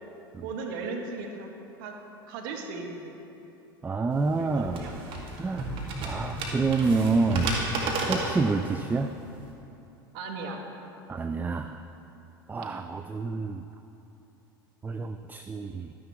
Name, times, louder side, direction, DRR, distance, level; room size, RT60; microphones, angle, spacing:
voice 1, 0.4-1.5 1.8-1.9 2.3-3.3 4.3-5.0 10.1-10.6 12.6-12.8, right 3 dB, 65° right, 2 dB, 1.4 m, -37 dB
voice 2, 3.8-4.9 5.4-5.7 6.0-7.5 8.1-9.1 11.1-11.8 12.5-13.6 14.8-15.9, right 4 dB, 15° right, 8 dB, 0.4 m, -28 dB
sound 1, 4.1-9.5, right 2 dB, 45° right, 1.9 m, -32 dB
12.0 x 10.0 x 3.4 m, 2.9 s
hypercardioid pair, 85°, 12 cm